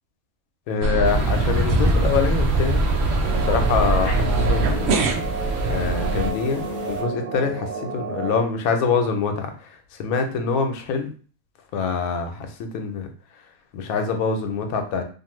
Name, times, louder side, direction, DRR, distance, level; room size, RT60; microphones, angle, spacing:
voice 1, 0.7-2.8 3.4-5.1 5.7-11.1 11.7-12.5 12.7-13.1 13.7-15.0, left 5 dB, 90° left, 5 dB, 1.0 m, -25 dB
sound 1, 0.8-6.3, right 3 dB, 65° right, 0.7 m, -22 dB
sound 2, 1.0-7.0, equal, 35° left, 0.5 m, -28 dB
sound 3, 3.2-8.4, right 4 dB, 80° right, 1.1 m, -31 dB
2.5 x 2.5 x 3.0 m, 0.40 s
omnidirectional pair, 1.5 m